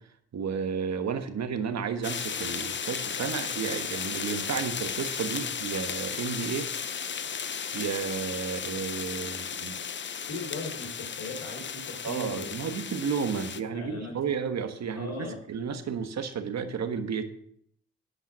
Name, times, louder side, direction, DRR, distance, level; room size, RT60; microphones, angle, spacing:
voice 1, 0.3-6.7 7.7-9.8 12.0-17.3, right 6 dB, 55° right, 8 dB, 1.4 m, -32 dB
sound 1, 2.0-13.6, left 7 dB, 35° left, 0.7 m, -35 dB
voice 2, 10.3-12.6 13.3-13.4 13.7-14.1 14.9-15.4, left 3 dB, 55° left, -2 dB, 4.0 m, -38 dB
11.0 x 5.6 x 6.1 m, 0.66 s
supercardioid pair, 50°, 32 cm